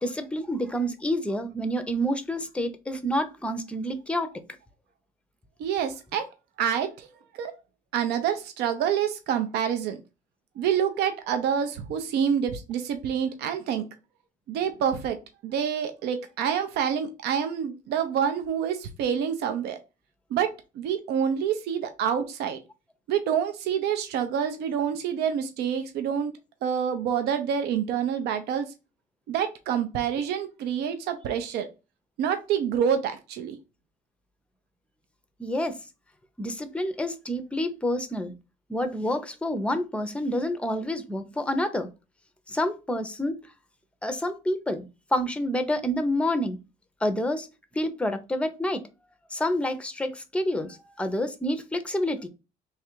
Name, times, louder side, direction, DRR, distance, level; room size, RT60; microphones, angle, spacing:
voice 1, 0.0-4.3 35.4-35.8 36.4-38.3 38.7-41.9 42.5-43.4 44.0-44.9 45.1-46.6 47.0-47.5 47.7-48.9 49.3-52.3, equal, 5° left, 0.5 m, -28 dB
voice 2, 5.6-6.3 6.6-7.1 7.3-7.5 7.9-10.0 10.6-13.8 14.5-15.2 15.4-19.8 20.3-22.6 23.1-26.3 26.6-28.7 29.3-31.7 32.2-33.6, right 8 dB, 75° right, 0.5 m, -27 dB
3.2 x 2.4 x 4.4 m
cardioid pair, 110°, 17 cm